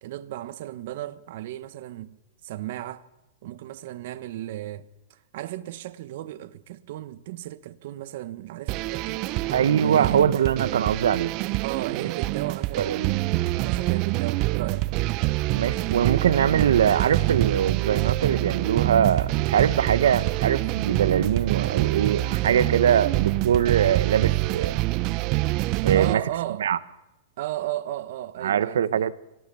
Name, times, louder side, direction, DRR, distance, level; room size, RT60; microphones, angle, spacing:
voice 1, 0.0-2.2 2.4-3.0 3.4-9.2 9.8-10.3 11.6-13.0 13.5-14.9 22.8-23.1 25.9-26.7 27.4-29.1, right 14 dB, 60° right, 1.4 m, -35 dB
sound 1, 8.7-26.1, right 18 dB, 40° right, 0.7 m, -26 dB
voice 2, 9.5-11.3 12.8-13.2 15.5-24.8 25.8-26.2 26.6-26.8 28.4-29.1, right 9 dB, 90° right, 1.3 m, -22 dB
26.5 x 19.0 x 7.1 m
hypercardioid pair, 140°, 0 cm